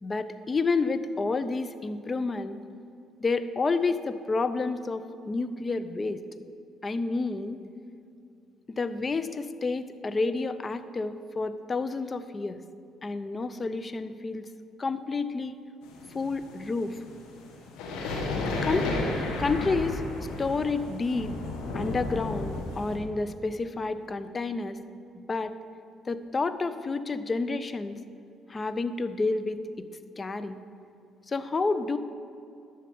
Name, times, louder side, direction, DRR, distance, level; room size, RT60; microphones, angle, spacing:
voice 1, 0.0-2.6 3.2-6.2 6.8-7.6 8.7-12.6 13.0-14.5 14.8-15.6 16.1-17.0 18.6-18.9 19.4-21.3 21.7-24.8 25.3-25.5 26.1-28.0 28.5-29.9 30.2-30.6 31.3-32.0, left 3 dB, 35° left, 12 dB, 0.6 m, -29 dB
sound 1, 15.8-23.0, left 2 dB, 85° left, 1.5 m, -33 dB
11.5 x 6.6 x 5.3 m, 2.6 s
supercardioid pair, 65°, 0 cm